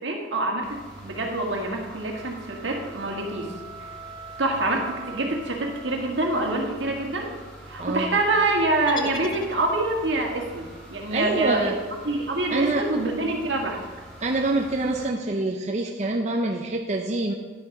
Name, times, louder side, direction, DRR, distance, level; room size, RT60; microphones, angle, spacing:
voice 1, 0.0-3.5 4.4-7.3 7.7-11.7 12.1-13.8, right 2 dB, 80° right, 1 dB, 1.8 m, -26 dB
sound 1, 0.6-15.1, right 1 dB, 5° left, 2.5 m, -45 dB
sound 2, 2.1-6.6, right 5 dB, 45° left, 2.7 m, -43 dB
voice 2, 7.8-8.1 11.1-11.8 12.5-12.9 14.2-17.3, right 2 dB, 40° right, 2 dB, 0.6 m, -26 dB
sound 3, 8.9-10.2, left 3 dB, 25° left, 0.6 m, -38 dB
10.5 x 6.7 x 5.4 m, 1.3 s
head